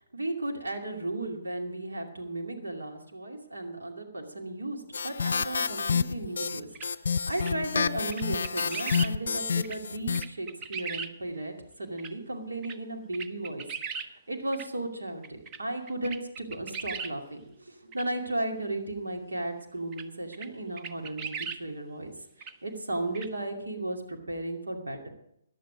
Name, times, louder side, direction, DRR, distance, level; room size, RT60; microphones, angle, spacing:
voice 1, 0.1-6.7 6.9-22.1 22.4-25.1, right 2 dB, 70° right, 3 dB, 2.4 m, -35 dB
sound 1, 4.9-10.2, left 5 dB, 55° left, 0.5 m, -29 dB
sound 2, 6.7-6.9 7.4-7.5 8.1-9.1 9.6-9.8 10.1-11.1 12.0-12.1 12.6-12.8 13.1-14.1 14.5-14.7 15.2-15.6 15.9-17.1 17.9-18.0 19.9-20.0 20.3-20.5 20.8-21.6 22.4-22.5 23.1-23.3, right 6 dB, 20° right, 0.7 m, -37 dB
14.5 x 11.0 x 5.1 m, 0.77 s
figure-of-eight pair, 135°, 0 cm